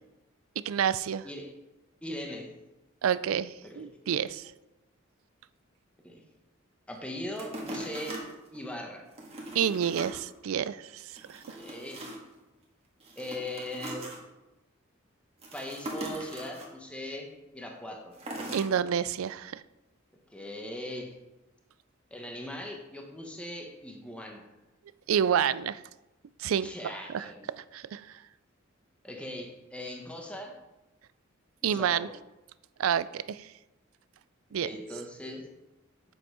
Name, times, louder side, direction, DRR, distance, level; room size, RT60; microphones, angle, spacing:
voice 1, 0.7-1.3 3.0-4.5 9.5-11.0 11.3-11.4 18.5-19.6 25.1-25.8 26.4-26.7 27.1-27.3 27.7-28.1 31.6-32.1 32.8-33.5 34.5-34.7, right 8 dB, 85° right, 17 dB, 0.4 m, -28 dB
voice 2, 2.0-2.5 3.6-3.9 6.0-6.2 6.9-8.3 8.5-9.1 11.5-12.1 13.1-14.1 15.5-18.2 20.3-21.1 22.1-24.5 26.6-27.5 29.0-30.6 31.6-32.1 34.6-35.5, left 1 dB, 5° left, 2 dB, 1.2 m, -40 dB
sound 1, 7.4-8.6 9.1-10.2 10.6-10.7 11.1-12.3 13.0-14.2 15.4-16.7 18.1-18.7 19.3-19.4, right 1 dB, 30° right, 1.8 m, -40 dB
8.0 x 7.0 x 4.8 m, 1.0 s
head